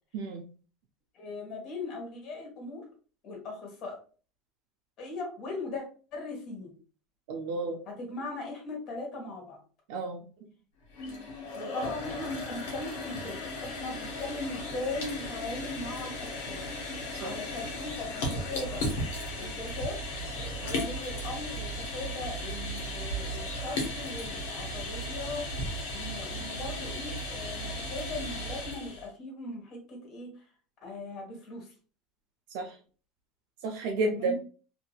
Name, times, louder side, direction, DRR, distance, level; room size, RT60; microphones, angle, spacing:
voice 1, 0.1-0.5 7.3-7.8 9.9-10.2 17.1-17.3 32.5-32.8 33.6-34.4, right 3 dB, 75° right, 2 dB, 0.4 m, -31 dB
voice 2, 1.1-2.8 3.2-4.0 5.0-5.8 6.1-6.7 7.9-9.6 11.5-16.6 17.2-18.8 19.4-20.0 20.6-25.5 25.9-30.3 30.8-31.7 34.0-34.4, left 2 dB, 50° left, 0 dB, 1.4 m, -39 dB
sound 1, 10.8-29.1, left 1 dB, 80° left, 1.1 m, -36 dB
2.8 x 2.6 x 2.3 m, 0.39 s
supercardioid pair, 105°, 0 cm